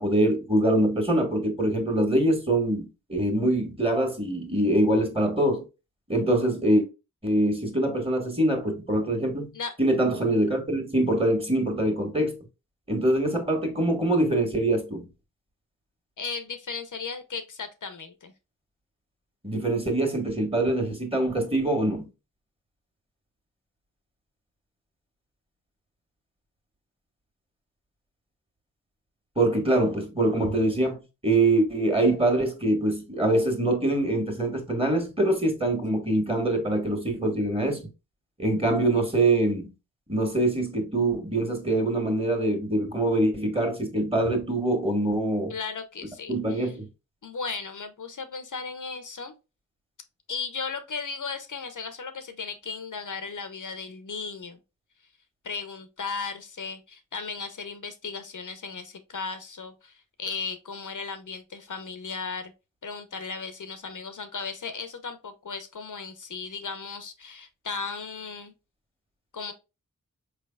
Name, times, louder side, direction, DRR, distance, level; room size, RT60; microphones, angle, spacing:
voice 1, 0.0-5.6 6.1-6.9 7.2-9.5 9.8-12.4 12.9-15.1 19.4-22.1 29.3-37.9 38.4-39.7 40.1-45.5 46.3-46.9, right 1 dB, 15° right, 1.6 m, -24 dB
voice 2, 16.2-18.3 45.5-46.7 47.2-49.3 50.3-54.6 55.4-62.5 62.8-68.5 69.3-69.5, left 5 dB, 60° left, 0.7 m, -36 dB
4.8 x 3.3 x 2.3 m
cardioid pair, 55°, 35 cm